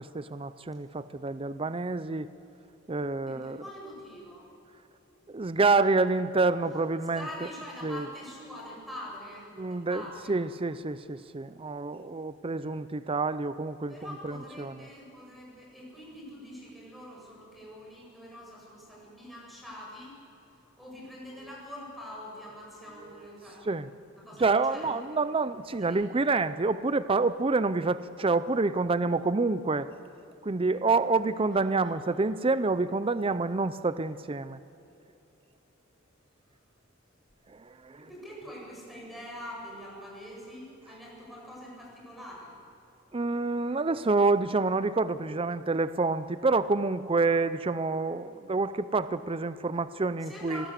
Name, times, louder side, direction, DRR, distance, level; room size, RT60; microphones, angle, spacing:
voice 1, 0.0-2.3 2.9-3.6 5.3-7.5 7.8-8.1 9.6-13.9 14.2-14.7 23.0-23.1 23.7-23.9 24.4-29.9 30.4-34.6 37.5-38.0 43.1-50.7, right 3 dB, 25° right, 14 dB, 0.5 m, -28 dB
voice 2, 3.3-4.5 5.2-5.3 7.1-10.3 13.9-20.1 20.8-23.6 24.2-25.0 25.7-26.2 31.5-31.9 38.0-42.5 50.2-50.7, left 1 dB, ahead, -4 dB, 7.9 m, -44 dB
25.5 x 19.0 x 8.3 m, 2.9 s
head